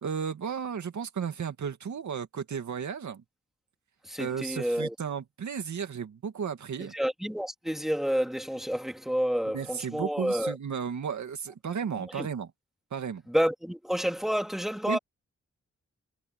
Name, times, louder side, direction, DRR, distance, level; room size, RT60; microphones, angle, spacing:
voice 1, 0.0-3.2 4.2-6.9 9.5-12.5 12.9-13.2 14.9-15.0, right 7 dB, 75° right, 2.4 m, -34 dB
voice 2, 4.0-4.9 6.8-10.6 12.0-12.3 13.3-15.0, equal, ahead, 3.4 m, -29 dB
cardioid pair, 65°, 29 cm